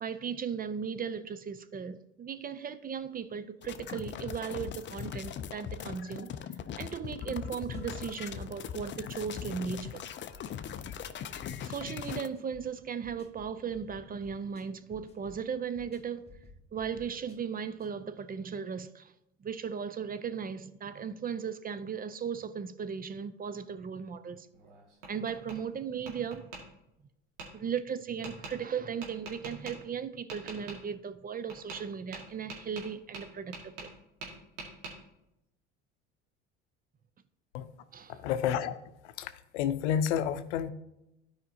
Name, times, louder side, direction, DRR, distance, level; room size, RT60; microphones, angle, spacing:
voice 1, 0.0-6.3 6.8-10.0 11.6-16.2 16.7-19.1 19.4-24.5 25.1-26.5 27.5-33.9 37.9-38.2, right 7 dB, 25° right, 0.5 m, -37 dB
sound 1, 3.6-12.3, left 8 dB, 35° left, 0.5 m, -40 dB
sound 2, 7.6-17.9, left 2 dB, 15° left, 1.5 m, -56 dB
Tap, 24.5-25.6 26.1-26.6 27.4-27.5 28.2-28.5 29.0-29.7 30.3-30.8 31.5-31.8 32.1-34.0 34.2-34.9, right 4 dB, 85° right, 2.1 m, -43 dB
voice 2, 38.1-38.8 39.2-40.7, left 9 dB, 80° left, 0.6 m, -30 dB
12.5 x 5.1 x 2.8 m
hypercardioid pair, 75°, 35 cm